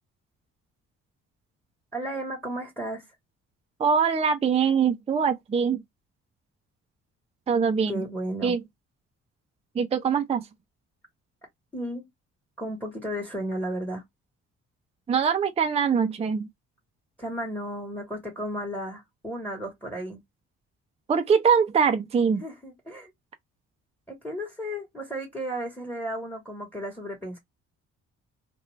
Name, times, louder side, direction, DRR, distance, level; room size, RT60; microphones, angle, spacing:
voice 1, 1.9-3.1 7.9-8.5 11.7-12.0 12.6-14.0 17.2-20.2 22.4-23.1 24.1-27.4, equal, 5° left, 1.1 m, -34 dB
voice 2, 3.8-5.8 7.5-8.0 8.4-8.6 9.7-10.5 15.1-16.5 21.1-22.4, right 6 dB, 20° right, 0.4 m, -23 dB
2.5 x 2.2 x 3.1 m
cardioid pair, 90°, 30 cm